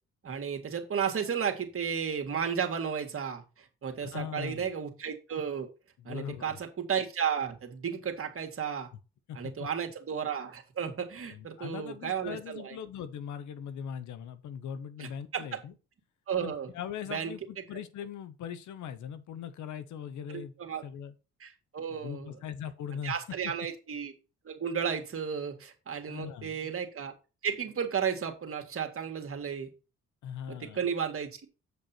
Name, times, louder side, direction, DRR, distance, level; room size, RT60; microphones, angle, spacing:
voice 1, 0.2-5.7 6.1-8.9 9.3-12.8 15.0-15.6 16.3-16.7 17.1-17.3 20.3-20.8 21.4-22.4 23.0-24.1 24.5-27.1 27.4-29.7 30.5-31.5, right 7 dB, 50° right, 2.0 m, -33 dB
voice 2, 4.0-4.7 6.0-6.6 9.3-9.7 11.2-15.7 16.4-20.5 20.8-21.1 21.9-23.2 23.4-23.5 26.1-26.7 30.2-30.8, left 8 dB, 85° left, 1.0 m, -40 dB
8.2 x 5.3 x 4.4 m
cardioid pair, 75°, 29 cm